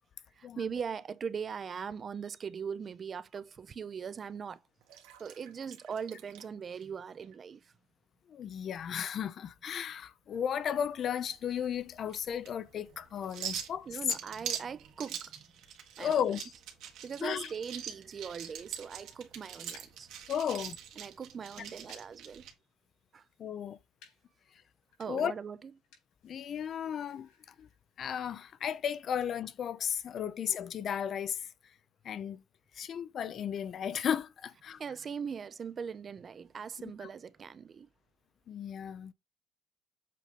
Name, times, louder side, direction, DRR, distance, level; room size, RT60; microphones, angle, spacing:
voice 1, 0.4-4.6 5.2-7.7 13.9-16.2 17.0-20.1 21.0-22.5 23.1-23.2 25.0-25.6 34.8-37.9, right 6 dB, 40° right, 0.4 m, -40 dB
sound 1, 3.5-3.8 4.2-7.4, right 10 dB, 90° right, 1.3 m, -57 dB
voice 2, 8.3-14.0 16.0-16.5 17.2-17.5 20.3-20.8 23.4-23.8 25.1-25.3 26.2-27.3 27.6-27.7 28.0-31.5 32.0-32.4 32.7-34.8 37.0-37.1 38.5-39.1, left 8 dB, 50° left, 0.5 m, -34 dB
sound 2, 10.3-22.5, right 9 dB, 75° right, 1.6 m, -44 dB
sound 3, 16.8-29.3, left 5 dB, 80° left, 4.3 m, -65 dB
7.5 x 2.7 x 5.0 m
cardioid pair, 105°, 0 cm